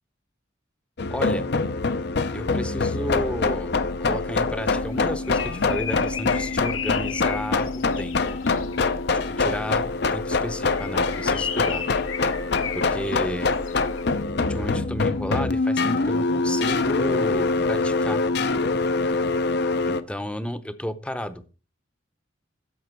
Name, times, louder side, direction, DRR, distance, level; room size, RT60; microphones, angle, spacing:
sound 1, 1.0-20.0, left 3 dB, 55° left, 0.7 m, -24 dB
voice 1, 1.1-1.5 2.3-3.7 4.0-8.2 9.1-9.9 10.1-11.9 12.7-13.6 14.5-18.2 19.9-21.4, equal, 5° left, 13 dB, 0.7 m, -32 dB
Bird, 4.9-9.0 10.6-14.1, left 8 dB, 85° left, 1.2 m, -35 dB
11.0 x 7.2 x 4.5 m, 0.35 s
head